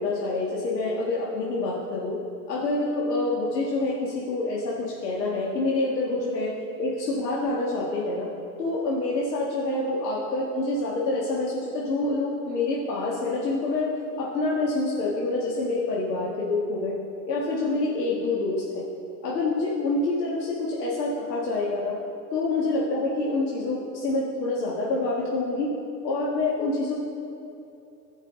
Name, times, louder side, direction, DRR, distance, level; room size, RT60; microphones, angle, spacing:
voice 1, 0.0-2.2 2.5-6.5 6.8-8.3 8.6-13.9 14.2-16.9 17.3-18.6 19.2-21.9 22.3-25.7 26.0-26.9, left 2 dB, 80° left, -5 dB, 1.7 m, -27 dB
16.0 x 5.4 x 3.7 m, 2.9 s
hypercardioid pair, 115°, 49 cm